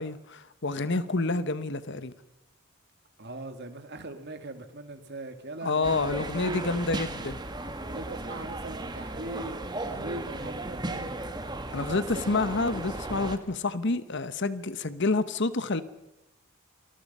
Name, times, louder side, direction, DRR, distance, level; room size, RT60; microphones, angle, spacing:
voice 1, 0.0-2.1 5.6-7.4 11.7-15.8, left 3 dB, 55° left, 14 dB, 1.1 m, -28 dB
voice 2, 3.2-6.7 7.9-11.3 11.7-12.2, right 2 dB, 50° right, 8 dB, 2.2 m, -40 dB
sound 1, 5.8-13.4, right 2 dB, 20° right, 1.5 m, -36 dB
27.5 x 20.0 x 5.6 m, 0.93 s
head